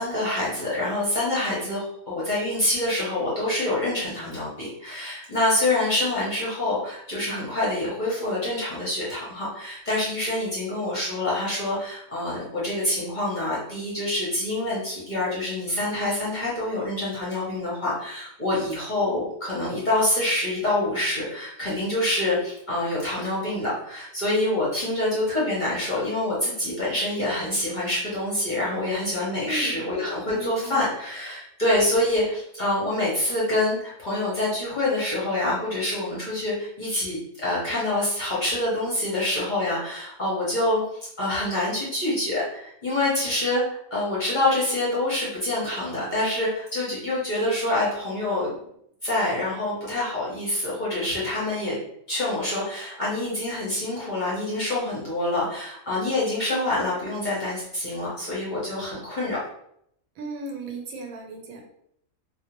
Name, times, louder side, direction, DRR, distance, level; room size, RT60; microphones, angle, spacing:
voice 1, 0.0-48.5 49.0-51.8 52.1-59.4, left 1 dB, 45° left, -7 dB, 0.6 m, -26 dB
voice 2, 29.4-29.8 30.2-30.8 60.2-61.6, right 2 dB, 85° right, 1 dB, 1.0 m, -36 dB
2.4 x 2.0 x 2.9 m, 0.73 s
omnidirectional pair, 1.5 m